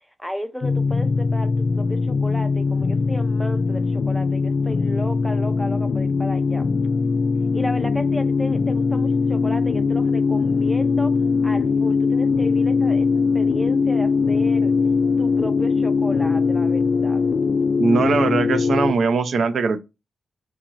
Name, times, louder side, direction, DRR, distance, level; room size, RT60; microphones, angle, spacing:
voice 1, 0.2-6.7 7.5-11.1 11.4-13.1 13.3-14.7 15.2-17.2, equal, ahead, 0.6 m, -33 dB
sound 1, 0.6-18.9, left 4 dB, 50° left, 0.3 m, -21 dB
voice 2, 17.8-19.8, right 4 dB, 60° right, 0.5 m, -20 dB
4.8 x 3.0 x 3.7 m
cardioid pair, 110°, 0 cm